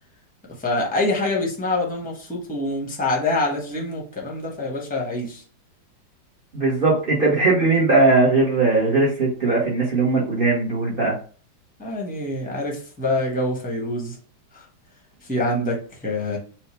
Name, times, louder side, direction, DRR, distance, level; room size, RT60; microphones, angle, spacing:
voice 1, 0.6-5.4 11.8-14.1 15.3-16.4, left 2 dB, 5° left, -1 dB, 0.6 m, -25 dB
voice 2, 6.5-11.1, right 3 dB, 35° right, -3 dB, 0.9 m, -19 dB
4.5 x 2.4 x 4.3 m, 0.41 s
omnidirectional pair, 2.1 m